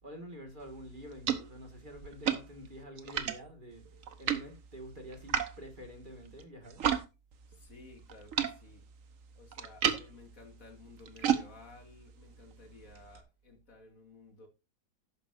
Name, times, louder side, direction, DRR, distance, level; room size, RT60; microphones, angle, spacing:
voice 1, 0.0-6.8, equal, 30° right, 2.1 m, -48 dB
sound 1, 0.6-7.1 7.3-13.2, right 8 dB, 55° right, 1.3 m, -36 dB
voice 2, 7.5-8.9 9.3-14.5, left 3 dB, 55° left, 2.8 m, -55 dB
11.5 x 9.2 x 2.6 m
omnidirectional pair, 1.8 m